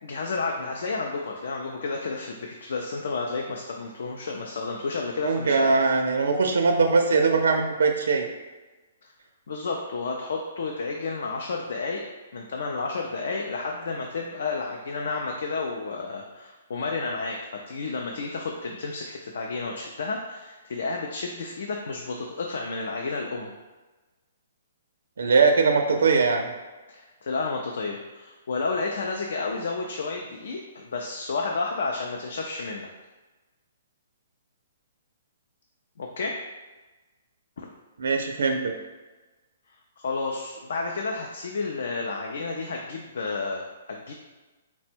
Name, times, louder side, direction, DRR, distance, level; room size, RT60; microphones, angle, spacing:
voice 1, 0.0-5.8 9.5-12.0 12.3-17.4 17.7-23.5 26.9-32.9 36.0-36.4 40.0-44.1, left 3 dB, 60° left, 0 dB, 0.4 m, -31 dB
voice 2, 5.2-8.3 25.2-26.5 38.0-38.7, right 4 dB, 85° right, 4 dB, 0.4 m, -21 dB
4.2 x 2.1 x 4.3 m, 1.2 s
hypercardioid pair, 175°, 0 cm